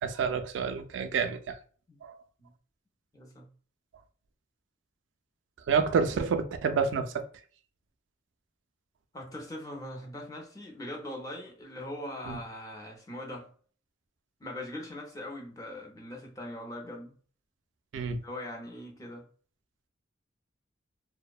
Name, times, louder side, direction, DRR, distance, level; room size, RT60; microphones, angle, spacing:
voice 1, 0.0-1.6 2.0-2.1 5.7-7.3 12.3-12.4 17.9-18.2, right 5 dB, 70° right, 0.3 m, -28 dB
voice 2, 3.1-3.5 9.1-13.5 14.4-17.2 18.2-19.2, left 1 dB, 20° left, 0.5 m, -41 dB
2.6 x 2.1 x 2.3 m
head